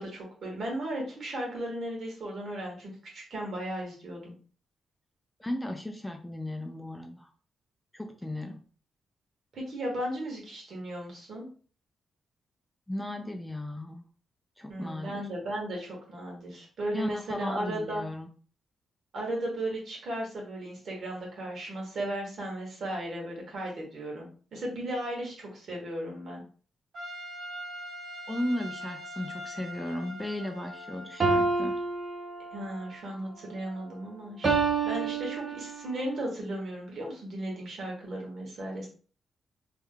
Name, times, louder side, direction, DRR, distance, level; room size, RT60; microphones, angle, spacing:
voice 1, 0.0-4.3 9.5-11.5 14.7-18.0 19.1-26.4 32.5-34.6 34.8-38.9, right 1 dB, 60° right, -1 dB, 1.6 m, -36 dB
voice 2, 5.4-7.3 7.9-8.6 12.9-14.0 14.6-15.3 16.9-18.3 28.3-31.8, left 1 dB, 10° left, 4 dB, 0.4 m, -35 dB
Trumpet, 26.9-31.5, equal, 75° right, 1.6 m, -42 dB
sound 1, 31.2-32.8 34.4-35.9, right 4 dB, 45° right, 0.6 m, -28 dB
3.4 x 3.2 x 2.3 m, 0.40 s
cardioid pair, 120°, 0 cm